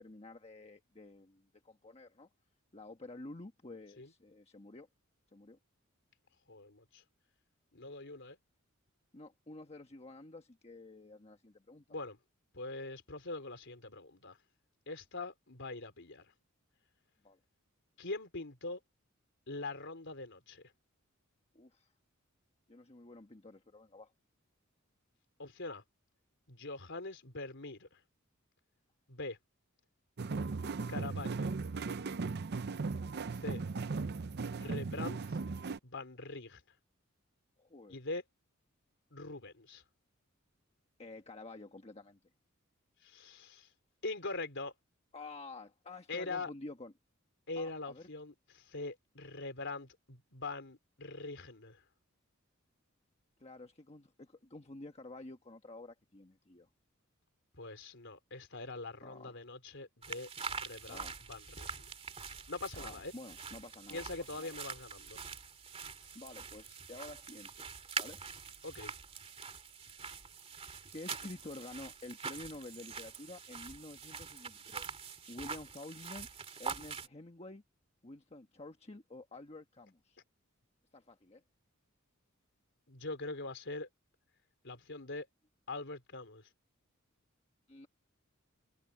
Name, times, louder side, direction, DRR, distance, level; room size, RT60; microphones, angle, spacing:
voice 1, 0.0-2.3 2.7-4.9 5.3-5.6 9.1-11.8 17.2-17.4 21.5-21.9 22.7-24.1 37.6-38.0 41.0-42.2 45.1-46.9 47.6-48.1 53.4-56.7 59.0-59.4 60.9-61.2 62.7-64.5 66.1-67.7 68.0-68.2 70.9-75.0 75.3-76.3 76.6-77.6 78.0-80.2 80.9-81.4 87.7-87.9, left 2 dB, 30° left, 1.3 m, -50 dB
voice 2, 6.5-7.0 7.7-8.4 11.9-12.2 12.5-14.4 14.9-16.3 18.0-18.8 19.5-20.6 25.4-25.8 26.5-28.0 29.1-29.4 30.9-31.5 33.4-33.6 34.6-35.4 35.8-36.6 37.9-38.2 39.1-39.8 43.0-43.7 44.0-44.7 46.1-46.5 47.5-51.8 57.5-60.3 60.6-61.9 62.5-63.1 63.9-65.2 68.6-68.9 82.9-83.9 84.6-85.3 85.7-86.4, left 3 dB, 60° left, 4.0 m, -43 dB
sound 1, 30.2-35.8, right 4 dB, 50° right, 0.6 m, -37 dB
sound 2, 60.0-77.1, right 5 dB, 30° right, 2.6 m, -45 dB
head